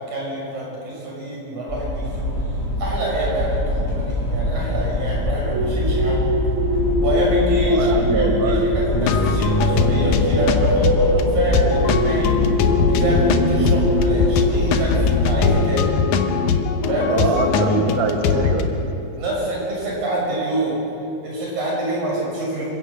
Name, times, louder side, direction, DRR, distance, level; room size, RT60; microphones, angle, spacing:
voice 1, 0.0-2.3 2.8-6.3 7.0-12.4 12.8-16.3 16.9-17.3 17.6-17.8 19.2-20.8 21.2-22.7, right 1 dB, 80° right, -4 dB, 7.7 m, -26 dB
sound 1, 1.7-15.4, left 2 dB, 20° left, 7.3 m, -24 dB
sound 2, 5.4-16.5, equal, 5° right, 2.2 m, -24 dB
voice 2, 7.7-8.7 17.1-18.9, right 4 dB, 40° right, 4 dB, 1.6 m, -24 dB
sound 3, 8.9-18.6, left 5 dB, 80° left, 2.5 m, -21 dB
25.5 x 16.5 x 6.7 m, 2.8 s
omnidirectional pair, 3.4 m